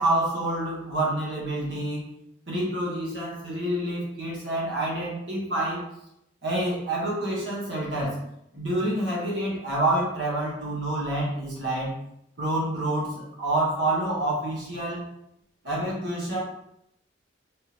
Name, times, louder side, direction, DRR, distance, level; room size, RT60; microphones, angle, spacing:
voice 1, 0.0-2.1 2.5-5.9 6.4-8.2 8.5-11.9 12.4-15.1 15.6-16.4, right 1 dB, 75° right, -4 dB, 1.3 m, -27 dB
3.4 x 3.3 x 3.0 m, 0.78 s
head